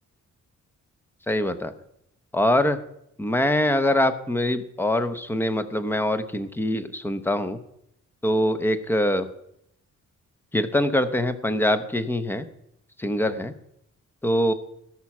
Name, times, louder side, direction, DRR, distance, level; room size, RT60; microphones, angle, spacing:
voice 1, 1.3-1.7 2.3-2.8 3.2-7.6 8.2-9.3 10.5-12.5 13.0-13.5 14.2-14.5, left 1 dB, 5° left, 11 dB, 0.7 m, -23 dB
17.5 x 5.8 x 6.0 m, 0.77 s
wide cardioid pair, 160°, 31 cm